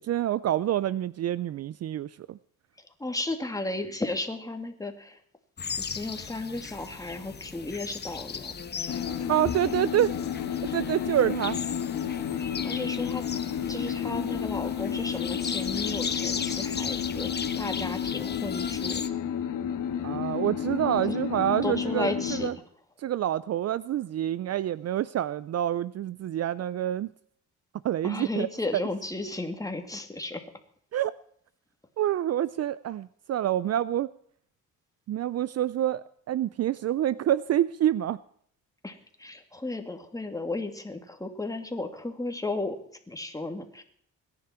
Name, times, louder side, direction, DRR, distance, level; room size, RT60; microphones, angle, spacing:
voice 1, 0.0-2.4 9.3-10.2 10.7-11.6 20.0-22.5 23.0-27.1 27.8-28.5 28.7-28.8 30.9-31.1 32.0-34.1 35.1-38.2, right 12 dB, 50° right, 18 dB, 0.5 m, -27 dB
voice 2, 3.0-5.2 5.8-8.5 12.6-13.2 13.7-19.0 21.1-21.2 21.6-22.5 28.0-30.4 38.8-42.8 43.1-43.8, left 2 dB, 10° left, 5 dB, 2.5 m, -34 dB
sound 1, 5.6-19.1, left 6 dB, 30° left, 1.1 m, -37 dB
sound 2, 8.9-22.5, left 8 dB, 70° left, 2.4 m, -31 dB
21.5 x 10.5 x 4.5 m, 0.63 s
cardioid pair, 85°, 32 cm